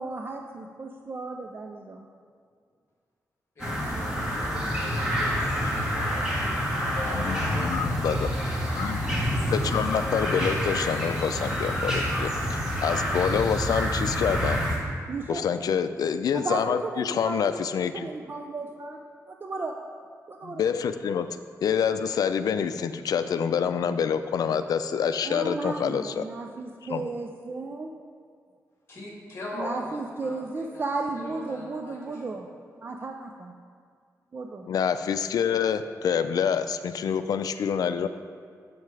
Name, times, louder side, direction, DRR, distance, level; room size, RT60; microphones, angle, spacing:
voice 1, 0.0-2.1 15.1-15.4 16.3-19.0 19.3-19.8 20.3-20.6 25.2-27.9 29.6-32.5 32.8-33.5 34.3-34.7, right 3 dB, 35° right, 2 dB, 0.5 m, -34 dB
voice 2, 3.6-6.6 6.9-8.2 28.9-30.8 31.1-32.4, left 1 dB, 40° left, -4 dB, 2.5 m, -41 dB
sound 1, 3.6-14.8, equal, 10° right, 2.0 m, -27 dB
voice 3, 7.1-8.3 8.8-9.0 9.5-14.6 15.3-18.1 20.4-26.3 26.9-27.1 34.7-38.1, left 7 dB, 85° left, 10 dB, 0.4 m, -27 dB
7.7 x 7.5 x 4.8 m, 2.1 s
wide cardioid pair, 140°, 6 cm